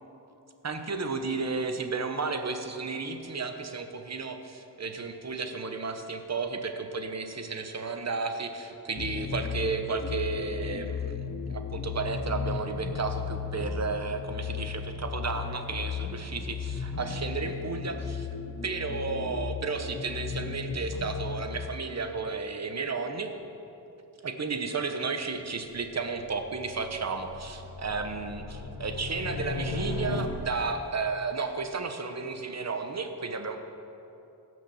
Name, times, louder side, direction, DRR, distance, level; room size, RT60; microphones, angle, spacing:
voice 1, 0.6-18.3 18.6-23.3 24.2-33.6, right 4 dB, 40° right, 6 dB, 1.0 m, -33 dB
sound 1, 9.0-21.7, left 6 dB, 40° left, 0.7 m, -35 dB
sound 2, 25.6-30.8, left 3 dB, 85° left, 1.2 m, -37 dB
17.0 x 6.3 x 7.0 m, 2.8 s
wide cardioid pair, 140°, 41 cm